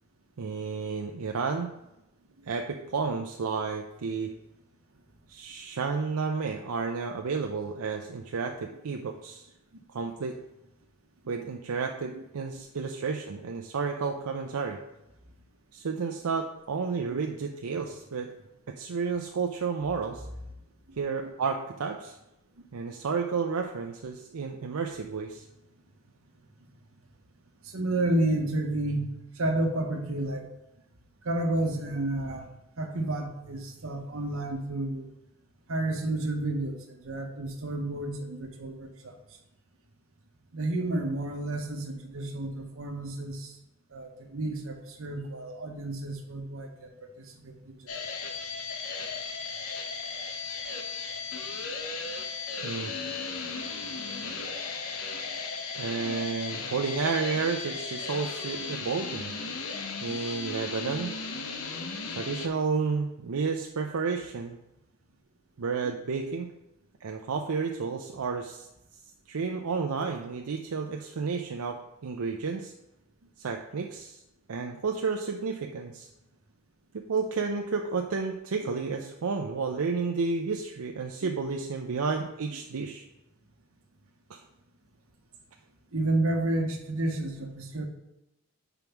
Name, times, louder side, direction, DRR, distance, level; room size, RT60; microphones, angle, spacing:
voice 1, 0.4-1.7 2.5-4.3 5.3-9.5 9.9-10.4 11.3-14.8 15.7-18.3 18.7-20.3 21.0-22.2 22.7-25.5 52.6-52.9 55.8-59.3 60.0-61.1 62.1-64.6 65.6-66.5 67.0-68.7 69.3-71.8 72.0-72.7 73.4-74.2 74.5-76.1 76.9-83.0 84.3-84.4, right 5 dB, 85° right, 3 dB, 0.5 m, -31 dB
voice 2, 27.6-29.1 29.3-30.5 31.2-32.5 32.8-35.1 35.7-39.2 40.5-43.6 43.9-47.9 85.9-87.9, right 2 dB, 70° right, 4 dB, 1.0 m, -31 dB
sound 1, 47.9-62.5, left 4 dB, 80° left, 0.8 m, -36 dB
5.3 x 4.6 x 5.8 m, 0.90 s
head